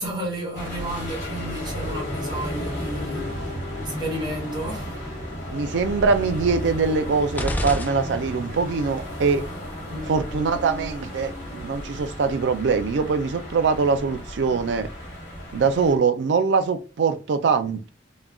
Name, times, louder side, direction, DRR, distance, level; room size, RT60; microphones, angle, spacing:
voice 1, 0.0-3.4 3.8-5.0 9.9-10.1, right 1 dB, 25° right, 1.2 m, -32 dB
sound 1, 0.5-16.0, equal, 40° left, 1.4 m, -33 dB
voice 2, 5.5-9.4 10.1-14.9 15.5-17.9, right 5 dB, 70° right, 0.4 m, -23 dB
sound 2, 7.3-8.7, left 1 dB, 10° left, 0.3 m, -29 dB
2.2 x 2.1 x 3.6 m
head